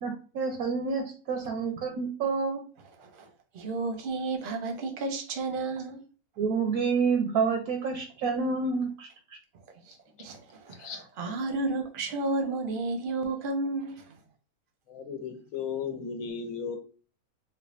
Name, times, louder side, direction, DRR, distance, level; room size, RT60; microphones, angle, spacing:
voice 1, 0.0-2.6 6.4-9.1, right 5 dB, 85° right, 1.1 m, -28 dB
voice 2, 3.5-6.0 9.9-14.2, right 3 dB, 50° right, 0.6 m, -32 dB
voice 3, 14.9-16.8, left 6 dB, 70° left, 1.1 m, -35 dB
4.5 x 2.4 x 2.4 m
omnidirectional pair, 1.5 m